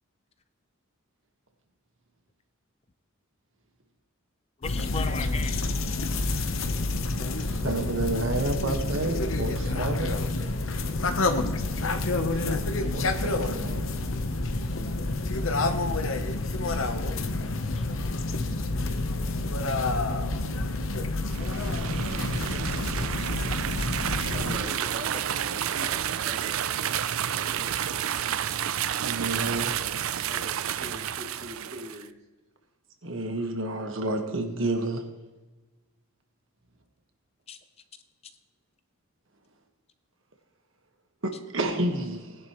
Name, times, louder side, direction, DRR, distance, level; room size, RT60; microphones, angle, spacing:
sound 1, 4.6-24.6, left 2 dB, 75° left, 1.0 m, -28 dB
voice 1, 4.6-5.6 16.7-16.8 17.7-17.8 22.5-23.3 37.5-37.6 38.2-38.3, left 5 dB, 30° left, 10 dB, 0.5 m, -38 dB
voice 2, 7.4-10.2 12.1-14.1 29.0-29.7 30.2-30.3 33.0-35.0 41.2-42.4, right 2 dB, 70° right, 4 dB, 1.5 m, -30 dB
sound 2, 21.2-32.0, right 9 dB, 85° right, 0.5 m, -30 dB
voice 3, 23.7-28.4 30.1-32.1, equal, 35° right, -2 dB, 2.7 m, -44 dB
19.0 x 10.5 x 3.1 m, 1.2 s
head